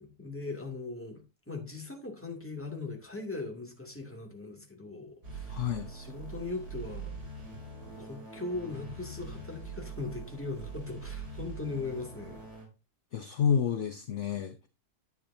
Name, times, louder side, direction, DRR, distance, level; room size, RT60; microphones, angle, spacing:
voice 1, 0.0-7.2 8.0-12.4, left 3 dB, 5° left, 2.3 m, -39 dB
sound 1, 5.2-12.7, right 4 dB, 70° right, 4.2 m, -43 dB
voice 2, 5.5-5.9 13.1-14.7, left 7 dB, 55° left, 0.9 m, -29 dB
11.0 x 8.7 x 2.7 m
omnidirectional pair, 1.8 m